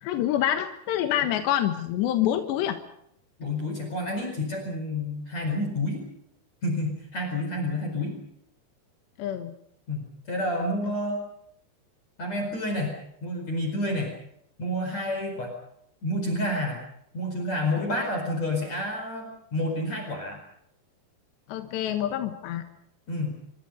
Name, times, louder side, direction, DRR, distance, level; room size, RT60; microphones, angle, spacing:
voice 1, 0.0-2.8 9.2-9.5 21.5-22.6, left 11 dB, 80° left, 7 dB, 3.5 m, -26 dB
voice 2, 3.4-6.0 6.6-8.2 9.9-11.2 12.2-12.9 13.2-14.1 14.6-15.5 16.0-16.8 17.1-20.4 23.1-23.4, left 1 dB, 40° left, 3 dB, 5.7 m, -29 dB
28.0 x 24.5 x 5.4 m, 0.74 s
omnidirectional pair, 5.2 m